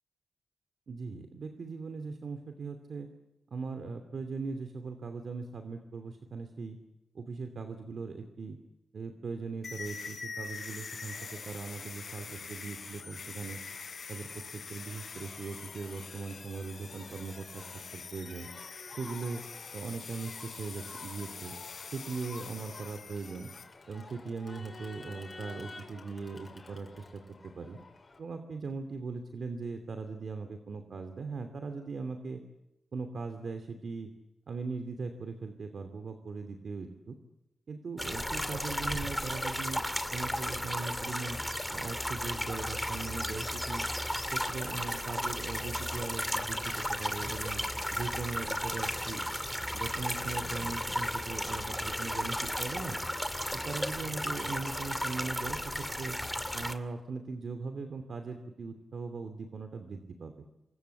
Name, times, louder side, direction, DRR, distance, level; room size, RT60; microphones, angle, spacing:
voice 1, 0.9-3.1 3.5-6.8 7.1-8.6 8.9-13.6 14.1-17.6 17.9-18.5 18.9-19.4 19.7-21.5 21.9-23.5 23.9-27.8 28.2-32.4 32.9-34.1 34.5-37.2 37.7-39.8 40.1-41.4 41.7-43.8 44.3-47.6 47.9-49.2 49.7-53.0 53.5-56.2 56.5-60.4, right 4 dB, 60° right, 6 dB, 2.8 m, -39 dB
sound 1, 9.6-23.6, left 5 dB, 60° left, 6.2 m, -44 dB
Crowd, 11.1-28.2, left 3 dB, 35° left, 6.6 m, -52 dB
sound 2, 38.0-56.7, equal, 5° left, 2.4 m, -34 dB
27.5 x 24.5 x 8.3 m, 0.97 s
wide cardioid pair, 105°, 0 cm